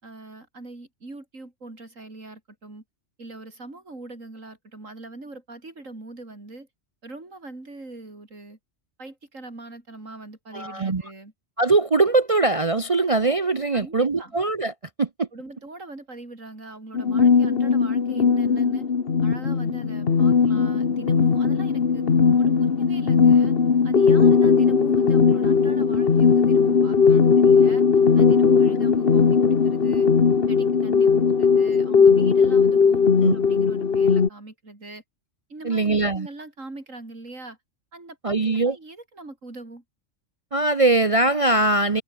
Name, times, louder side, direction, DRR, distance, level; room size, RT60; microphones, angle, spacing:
voice 1, 0.0-2.8 3.2-6.7 7.0-8.6 9.0-11.3 13.7-14.4 15.3-18.9 19.2-22.1 22.4-23.6 23.8-27.9 28.2-30.1 30.5-35.0 35.5-37.6 37.9-39.8, right 2 dB, 85° right, 5.3 m, -42 dB
voice 2, 10.5-11.0 11.6-15.3 33.2-33.4 35.6-36.3 38.2-38.8 40.5-42.0, right 2 dB, 30° right, 0.8 m, -21 dB
sound 1, 16.9-34.3, left 5 dB, 50° left, 1.5 m, -18 dB
omnidirectional pair, 1.3 m